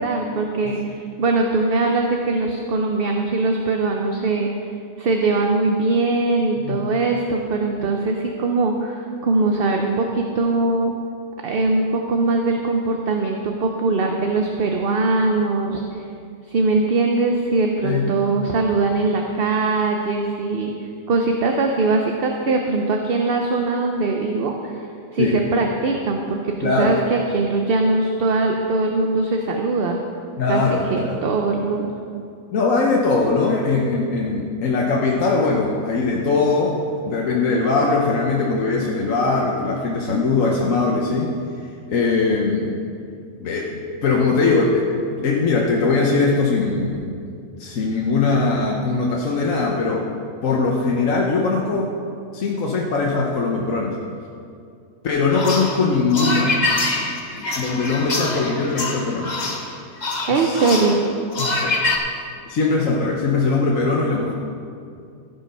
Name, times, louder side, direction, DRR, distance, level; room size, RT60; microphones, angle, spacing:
voice 1, 0.0-4.5 5.0-10.9 11.4-15.8 16.5-20.7 21.1-24.8 25.1-30.0 30.5-30.6 30.9-31.9 60.3-61.0, right 3 dB, 50° right, 2 dB, 0.8 m, -21 dB
voice 2, 26.6-26.9 30.4-31.2 32.5-41.3 41.9-42.7 43.4-47.1 47.6-50.1 50.4-51.9 52.3-54.0 55.0-56.6 57.6-59.3 60.3-60.8 61.4-61.8 62.5-64.3, left 3 dB, 65° left, -2 dB, 1.3 m, -21 dB
sound 1, 55.3-62.0, left 2 dB, 35° left, 1.0 m, -25 dB
15.5 x 5.7 x 5.5 m, 2.4 s
omnidirectional pair, 1.5 m